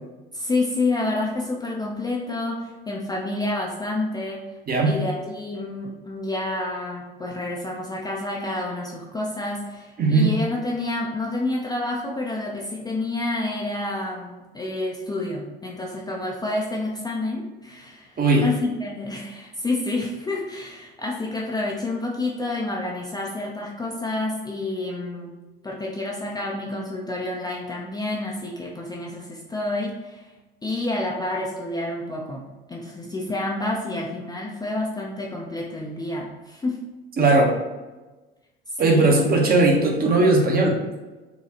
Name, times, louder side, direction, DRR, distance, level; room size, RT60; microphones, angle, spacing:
voice 1, 0.3-4.4 4.8-25.3 25.6-30.2 30.6-36.8 38.8-39.1, left 2 dB, 15° left, -3 dB, 0.5 m, -29 dB
voice 2, 10.0-10.3 18.2-18.5 37.2-37.6 38.8-40.8, right 2 dB, 30° right, 0 dB, 0.8 m, -18 dB
4.1 x 2.3 x 2.8 m, 1.2 s
hypercardioid pair, 70°, 30 cm